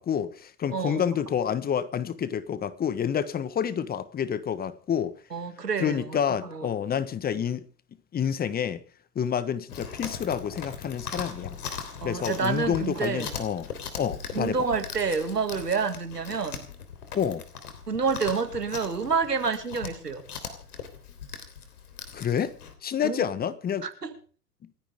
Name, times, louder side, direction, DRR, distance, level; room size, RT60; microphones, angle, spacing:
voice 1, 0.0-5.1 5.8-7.6 8.1-8.8 9.1-11.6 12.0-13.7 14.0-14.6 17.1-17.4 22.1-22.5 22.8-23.9, left 8 dB, 20° left, 1.4 m, -28 dB
voice 2, 0.7-1.1 5.3-6.7 12.0-13.3 14.3-16.7 17.9-20.2 23.0-23.3 23.8-24.1, right 5 dB, 90° right, 2.5 m, -28 dB
Chewing mastication, 9.7-22.7, left 6 dB, 70° left, 3.5 m, -40 dB
28.5 x 10.5 x 3.7 m
figure-of-eight pair, 100°, 47 cm